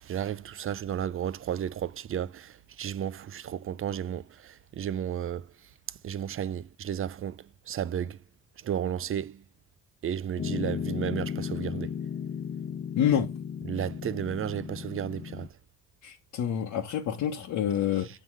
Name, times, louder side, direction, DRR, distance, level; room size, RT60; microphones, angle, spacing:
voice 1, 0.0-5.5 6.0-8.2 8.6-9.4 10.0-11.9 13.6-15.5, right 9 dB, 45° right, 0.5 m, -33 dB
Piano, 10.4-15.5, left 8 dB, 35° left, 0.5 m, -35 dB
voice 2, 13.0-13.3 16.0-18.1, left 9 dB, 80° left, 1.2 m, -27 dB
7.8 x 3.8 x 6.1 m
cardioid pair, 90°, 30 cm